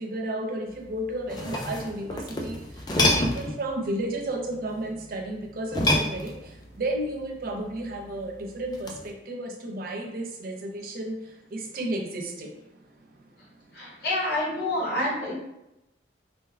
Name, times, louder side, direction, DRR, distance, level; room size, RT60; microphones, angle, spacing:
voice 1, 0.0-12.7 13.5-14.0, right 1 dB, 50° right, 2 dB, 0.4 m, -33 dB
sound 1, 1.1-3.6 5.7-6.7 8.7-9.1, left 1 dB, 20° left, 0.3 m, -27 dB
voice 2, 13.7-15.3, left 1 dB, 55° left, -5 dB, 1.1 m, -28 dB
3.3 x 2.2 x 3.2 m, 0.90 s
head